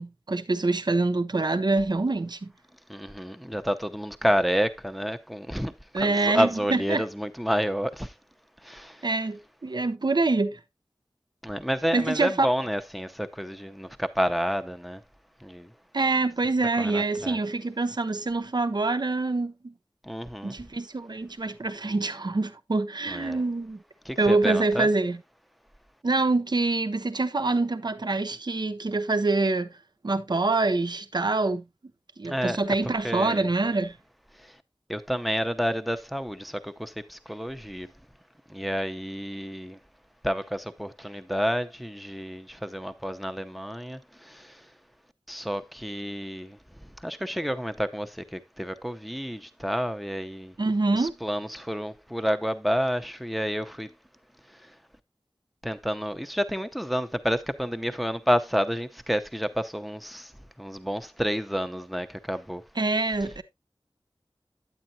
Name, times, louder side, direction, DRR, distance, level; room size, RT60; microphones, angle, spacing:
voice 1, 0.0-2.5 5.9-7.0 9.0-10.6 11.9-12.5 15.9-19.7 20.4-23.8 24.2-25.2 26.0-29.7 30.0-31.6 32.2-34.0 50.6-51.1 62.8-63.4, right 3 dB, 55° right, 0.8 m, -25 dB
voice 2, 2.9-8.1 8.6-9.1 11.4-15.0 15.4-15.7 16.8-17.4 20.0-20.5 23.1-23.4 24.0-24.9 32.3-32.6 33.0-33.5 34.4-34.5 34.9-37.9 38.5-39.8 40.2-44.6 45.3-50.5 50.9-53.9 55.6-60.3 60.6-62.6, equal, ahead, 0.8 m, -30 dB
9.0 x 8.6 x 2.7 m
wide cardioid pair, 50°, 9 cm